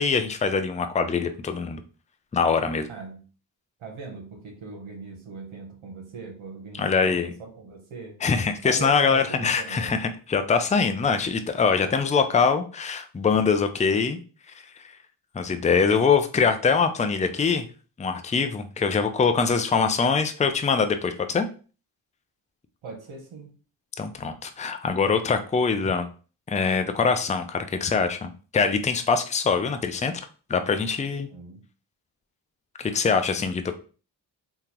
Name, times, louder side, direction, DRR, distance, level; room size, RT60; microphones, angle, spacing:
voice 1, 0.0-1.8 2.3-2.9 6.7-7.3 8.2-14.2 15.3-17.7 18.0-21.5 24.0-26.1 26.5-31.3 32.8-33.8, left 5 dB, 15° left, 8 dB, 0.4 m, -23 dB
voice 2, 2.9-3.2 3.8-8.2 8.6-10.0 22.8-23.5 31.3-31.6, right 4 dB, 75° right, 0 dB, 0.9 m, -40 dB
3.6 x 2.3 x 2.9 m, 0.37 s
supercardioid pair, 40°, 48 cm